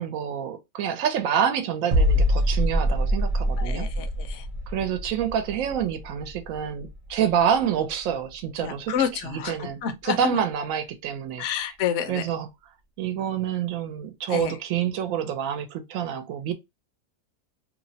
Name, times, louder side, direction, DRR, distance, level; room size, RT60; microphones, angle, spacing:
voice 1, 0.0-3.9 4.7-11.5 12.1-12.5 13.0-16.5, right 9 dB, 75° right, 1.0 m, -27 dB
sound 1, 1.9-7.6 7.9-8.1, equal, 60° right, 0.4 m, -25 dB
voice 2, 3.6-4.4 8.6-10.4 11.4-12.2 14.3-14.5, left 8 dB, 65° left, 0.9 m, -29 dB
2.9 x 2.0 x 2.6 m
omnidirectional pair, 1.5 m